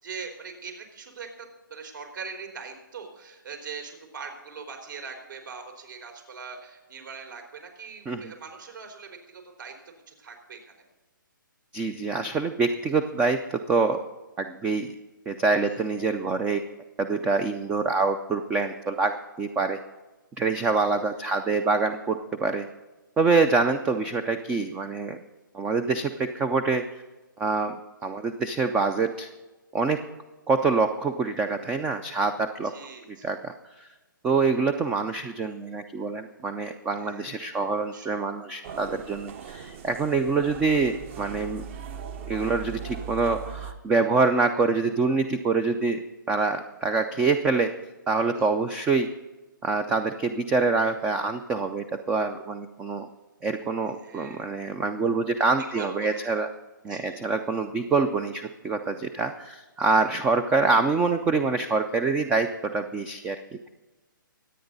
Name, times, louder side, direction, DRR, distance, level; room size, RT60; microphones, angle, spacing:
voice 1, 0.0-10.9 20.8-21.2 32.6-33.3 37.0-37.3 37.6-38.2 48.3-48.5 53.9-54.5 55.7-56.3 56.9-57.3, right 5 dB, 65° right, 3 dB, 4.2 m, -42 dB
voice 2, 11.7-14.0 14.4-14.9 15.3-16.6 17.0-19.8 20.4-22.7 23.2-25.2 25.5-26.8 27.4-27.7 28.0-29.3 29.7-30.0 30.5-32.7 33.2-33.9 34.2-41.7 42.3-47.7 48.1-49.1 49.6-53.1 53.4-56.5 56.8-63.4, right 4 dB, 10° right, 9 dB, 0.4 m, -25 dB
sound 1, 38.6-43.7, right 7 dB, 35° right, 1.0 m, -39 dB
24.5 x 8.8 x 4.0 m, 1.2 s
hypercardioid pair, 155°, 11 cm